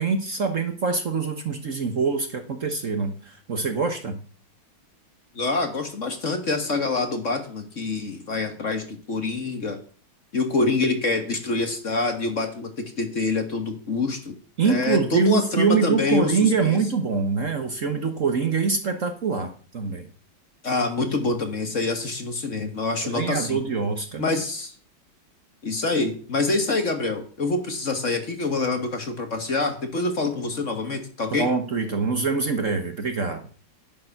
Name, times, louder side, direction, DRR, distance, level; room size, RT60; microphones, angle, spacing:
voice 1, 0.0-4.2 14.6-20.1 23.0-24.2 31.3-33.5, right 5 dB, 45° right, 7 dB, 1.3 m, -24 dB
voice 2, 5.3-9.8 10.3-14.3 14.6-16.8 20.6-23.6 24.2-24.7 25.6-31.5, left 3 dB, 40° left, 7 dB, 1.5 m, -26 dB
11.0 x 9.6 x 5.9 m, 0.42 s
omnidirectional pair, 2.2 m